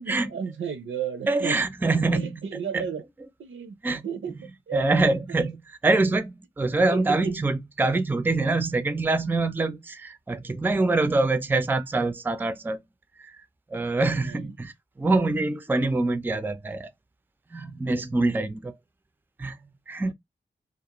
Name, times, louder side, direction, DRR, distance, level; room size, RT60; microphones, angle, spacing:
voice 1, 0.0-1.6 2.1-3.0 3.4-4.4 4.7-5.0 5.3-5.4 6.9-7.4 14.2-14.5 20.0-20.1, right 6 dB, 80° right, 0.5 m, -33 dB
voice 2, 1.3-2.4 2.7-2.9 3.8-4.0 4.7-12.8 13.7-14.7 15.0-16.9 17.5-18.7 19.4-19.6 19.9-20.1, right 3 dB, 10° right, 0.3 m, -25 dB
2.4 x 2.1 x 2.8 m
wide cardioid pair, 65°, 20 cm